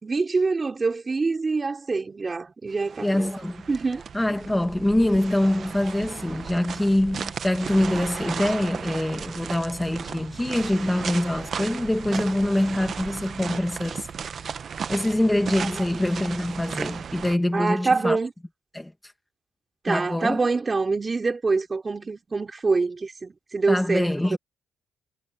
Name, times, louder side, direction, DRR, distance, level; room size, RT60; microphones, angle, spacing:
voice 1, 0.0-3.3 3.7-4.0 17.5-18.3 19.8-24.4, right 4 dB, 30° right, 3.5 m, -25 dB
sound 1, 2.8-17.4, right 7 dB, 50° right, 0.9 m, -35 dB
voice 2, 3.0-3.7 4.1-14.5 14.9-18.2 18.7-19.1 19.9-20.5 23.7-24.4, left 1 dB, 10° left, 1.8 m, -24 dB
cardioid pair, 90°, 0 cm